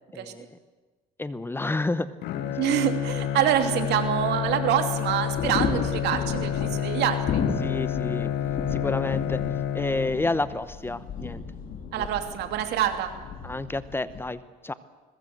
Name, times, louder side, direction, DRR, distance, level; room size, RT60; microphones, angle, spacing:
voice 1, 0.1-0.6 1.2-2.1 7.6-8.3 8.7-9.4 9.7-11.4 12.0-12.1 13.4-14.7, left 2 dB, 15° left, 14 dB, 0.9 m, -30 dB
Bowed string instrument, 2.2-10.5, left 10 dB, 75° left, 1.6 m, -29 dB
voice 2, 2.6-7.4 11.9-13.1, right 10 dB, 80° right, 6 dB, 2.8 m, -26 dB
sound 1, 3.0-14.2, left 5 dB, 55° left, 3.4 m, -35 dB
21.5 x 21.0 x 8.0 m, 1.3 s
cardioid pair, 110°, 17 cm